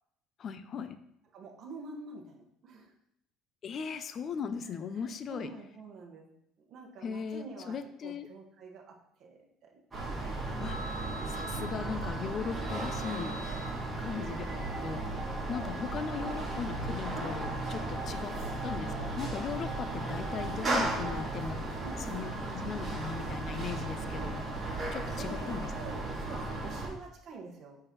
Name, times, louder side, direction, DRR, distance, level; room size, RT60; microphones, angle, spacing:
voice 1, 0.4-1.0 3.6-5.5 7.0-8.3 10.6-10.8 11.3-13.4 14.0-14.4 14.8-18.4 18.6-21.8 22.1-24.4 24.9-25.7, left 6 dB, 35° left, 11 dB, 0.4 m, -38 dB
voice 2, 1.3-3.0 4.7-6.3 6.7-7.7 8.0-9.8 13.5-14.2 21.8-22.3 24.7-24.9 25.1-27.8, right 3 dB, 40° right, -1 dB, 1.3 m, -47 dB
sound 1, 9.9-26.9, right 2 dB, 10° right, 1.9 m, -35 dB
sound 2, 14.5-21.4, right 1 dB, 10° left, 2.1 m, -45 dB
7.8 x 5.6 x 3.0 m, 0.73 s
cardioid pair, 170°, 0 cm